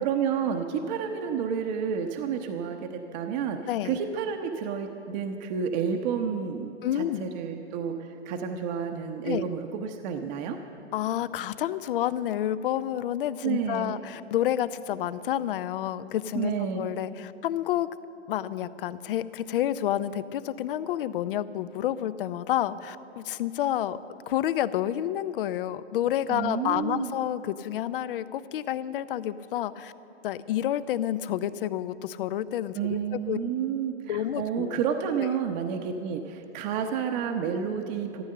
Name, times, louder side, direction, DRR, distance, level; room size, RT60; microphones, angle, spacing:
voice 1, 0.0-3.6 3.8-10.6 13.4-14.0 16.3-16.8 26.3-27.1 32.7-38.2, right 7 dB, 40° right, 4 dB, 0.9 m, -30 dB
voice 2, 3.7-4.0 6.8-7.3 9.2-9.4 10.9-17.9 18.3-24.0 24.3-29.9 30.2-33.4 34.1-34.8 35.2-35.4, left 11 dB, 50° left, 15 dB, 0.6 m, -29 dB
13.5 x 13.5 x 6.6 m, 2.9 s
hypercardioid pair, 120°, 34 cm